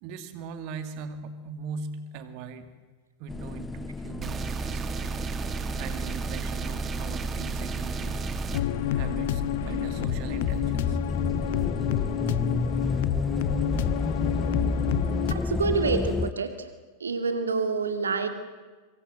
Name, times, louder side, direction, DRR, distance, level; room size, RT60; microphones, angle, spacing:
voice 1, 0.0-2.7 3.2-4.9 5.8-8.2 8.9-11.0 13.3-13.4, right 5 dB, 45° right, 9 dB, 2.4 m, -40 dB
sound 1, 3.3-16.3, left 3 dB, 10° left, 0.8 m, -31 dB
sound 2, 4.2-8.6, right 6 dB, 20° right, 2.1 m, -33 dB
sound 3, 8.5-15.4, left 12 dB, 55° left, 1.0 m, -29 dB
voice 2, 15.3-16.7 17.0-18.3, right 4 dB, 70° right, 7 dB, 2.5 m, -27 dB
26.0 x 25.5 x 7.8 m, 1.4 s
figure-of-eight pair, 90°, 0 cm